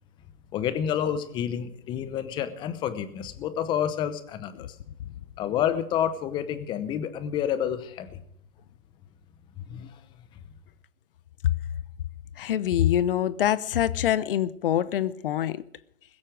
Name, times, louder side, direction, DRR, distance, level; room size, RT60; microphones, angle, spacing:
voice 1, 0.5-4.7 5.4-8.2 9.6-10.0, left 9 dB, 10° left, 0.8 m, -29 dB
voice 2, 12.4-15.6, left 11 dB, 40° left, 0.9 m, -25 dB
21.0 x 8.6 x 6.2 m
hypercardioid pair, 140°, 42 cm